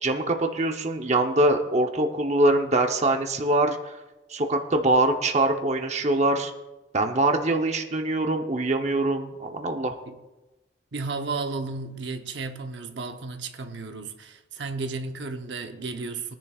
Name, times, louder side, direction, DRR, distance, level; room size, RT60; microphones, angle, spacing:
voice 1, 0.0-3.9 4.3-6.5 6.9-9.9, right 2 dB, 40° right, 0.9 m, -23 dB
voice 2, 10.9-16.3, right 3 dB, 70° right, 0.9 m, -33 dB
22.0 x 10.5 x 2.4 m
head